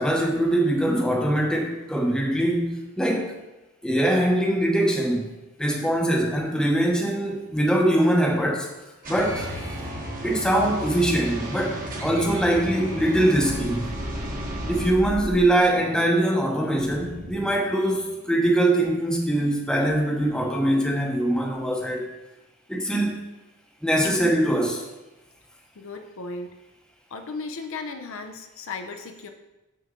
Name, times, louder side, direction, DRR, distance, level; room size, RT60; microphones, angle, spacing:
voice 1, 0.0-3.3 3.8-5.3 5.6-8.7 9.1-9.5 10.2-13.9 14.7-22.1 22.7-23.1 23.8-24.8, right 1 dB, 5° left, 0 dB, 0.9 m, -22 dB
sound 1, 9.0-14.9, equal, 40° right, 1.6 m, -33 dB
sound 2, 13.3-15.8 16.7-17.7, equal, 85° right, 2.5 m, -35 dB
voice 2, 25.8-26.5 27.1-29.3, left 4 dB, 65° left, 5 dB, 0.6 m, -36 dB
6.9 x 6.3 x 3.7 m, 1.0 s
head